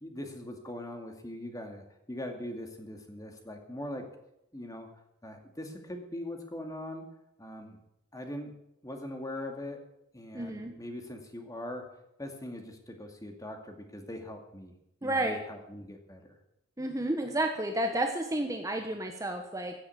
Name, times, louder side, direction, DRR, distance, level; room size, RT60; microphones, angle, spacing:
voice 1, 0.0-4.1 4.5-4.9 5.2-7.0 7.4-7.8 8.1-8.5 8.8-9.8 10.1-11.9 12.2-14.7 15.0-16.2, left 1 dB, 15° left, 4 dB, 2.2 m, -41 dB
voice 2, 10.3-10.7 15.0-15.4 16.8-19.7, right 1 dB, 15° right, 4 dB, 1.2 m, -31 dB
16.0 x 8.1 x 8.5 m, 0.82 s
head